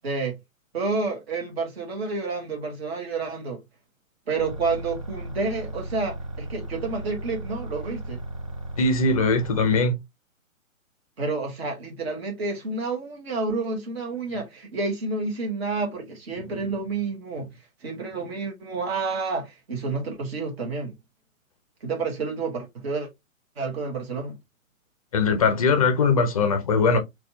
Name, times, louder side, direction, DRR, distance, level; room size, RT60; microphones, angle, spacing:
voice 1, 0.0-0.4 0.7-3.6 4.3-8.2 11.2-17.5 17.8-20.9 21.8-23.1 23.6-24.4, right 3 dB, 50° right, 1.2 m, -29 dB
sound 1, 4.4-9.8, right 2 dB, 25° right, 0.4 m, -36 dB
voice 2, 8.8-9.9 16.3-16.7 25.1-27.0, left 4 dB, 25° left, 0.5 m, -21 dB
4.0 x 2.3 x 2.6 m
figure-of-eight pair, 125°, 41 cm